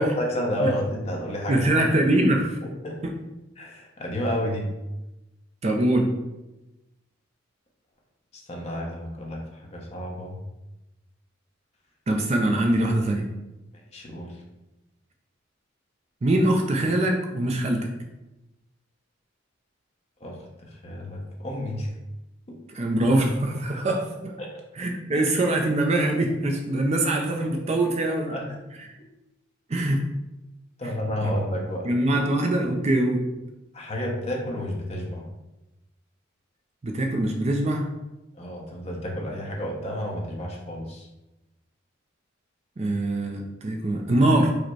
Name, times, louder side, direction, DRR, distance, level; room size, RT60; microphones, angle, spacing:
voice 1, 0.0-1.8 2.8-3.0 3.6-4.7 8.3-9.4 9.7-10.4 13.9-14.3 20.2-20.3 20.8-21.9 24.4-24.5 25.1-25.3 28.3-28.4 30.8-31.9 33.7-35.2 38.4-41.1, equal, 30° left, -1 dB, 0.9 m, -30 dB
voice 2, 1.5-2.6 3.0-3.1 5.6-6.1 12.1-13.3 16.2-17.9 22.7-24.4 24.7-28.3 28.8-28.9 29.7-30.0 30.8-30.9 31.2-31.3 31.8-33.3 36.8-37.9 42.8-44.5, right 1 dB, 30° right, 3 dB, 0.4 m, -23 dB
4.8 x 2.1 x 4.6 m, 0.99 s
head